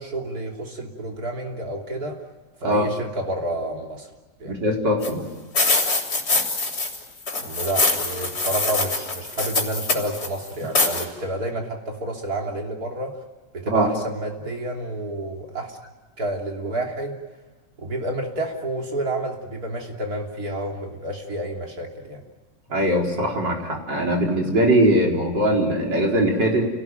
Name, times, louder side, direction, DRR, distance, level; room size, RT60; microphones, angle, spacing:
voice 1, 0.0-2.2 2.6-4.1 4.4-4.6 7.4-13.2 13.5-15.8 16.2-17.2 17.8-22.2, right 1 dB, 55° right, 1 dB, 3.7 m, -29 dB
voice 2, 4.5-5.3 13.7-13.9 22.7-26.7, right 1 dB, 80° right, 0 dB, 5.0 m, -21 dB
sound 1, 5.0-5.1 5.5-7.0 7.3-10.3 10.7-11.0, left 3 dB, 60° left, 4.1 m, -23 dB
29.5 x 18.0 x 9.1 m, 1.3 s
omnidirectional pair, 1.9 m